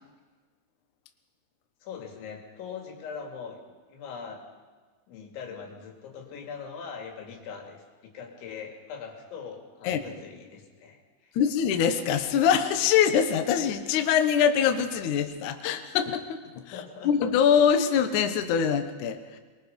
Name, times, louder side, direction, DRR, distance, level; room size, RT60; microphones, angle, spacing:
voice 1, 1.8-3.6 3.9-4.4 5.1-11.4 16.7-17.1, left 6 dB, 90° left, 2 dB, 4.8 m, -41 dB
voice 2, 11.4-16.4 17.0-19.4, left 8 dB, 70° left, 7 dB, 1.9 m, -23 dB
23.5 x 21.5 x 5.4 m, 1.4 s
omnidirectional pair, 5.2 m